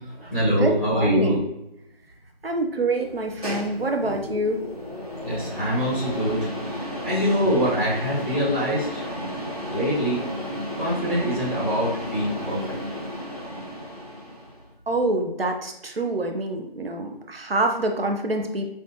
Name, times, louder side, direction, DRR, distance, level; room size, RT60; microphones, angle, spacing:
voice 1, 0.0-1.4 5.2-9.1 9.7-10.2 10.7-12.8, equal, ahead, -17 dB, 1.6 m, -24 dB
voice 2, 0.5-1.5 2.4-4.6 14.9-18.7, right 2 dB, 70° right, 3 dB, 0.7 m, -26 dB
sound 1, 3.0-14.6, equal, 40° right, 1.1 m, -33 dB
6.3 x 2.5 x 2.8 m, 0.87 s
figure-of-eight pair, 175°, 31 cm